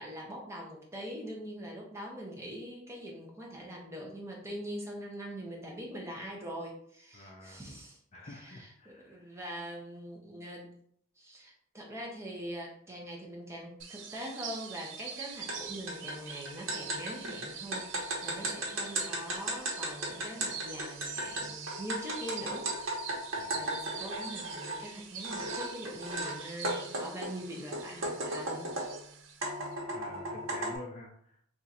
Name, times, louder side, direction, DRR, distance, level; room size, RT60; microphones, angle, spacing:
voice 1, 0.0-10.7 11.2-23.1 23.4-29.0, equal, 15° right, -2 dB, 0.7 m, -43 dB
voice 2, 7.1-7.6 8.1-9.3 23.4-23.7 29.9-31.4, left 2 dB, 35° left, -1 dB, 0.4 m, -48 dB
sound 1, 13.8-29.7, right 7 dB, 70° right, 0.5 m, -45 dB
sound 2, 15.5-15.6 15.9-24.8 25.2-26.3 26.6-29.0 29.4-30.8, right 1 dB, 90° right, 1.0 m, -35 dB
2.8 x 2.4 x 4.1 m, 0.65 s
head